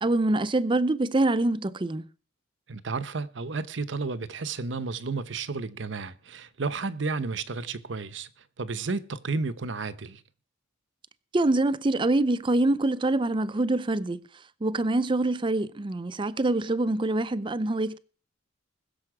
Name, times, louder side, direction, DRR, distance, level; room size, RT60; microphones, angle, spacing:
voice 1, 0.0-2.0 11.3-14.2 14.6-18.0, right 2 dB, 25° right, 0.5 m, -25 dB
voice 2, 2.7-8.3 8.6-10.2, right 4 dB, 65° right, 0.8 m, -32 dB
20.5 x 7.0 x 4.8 m
head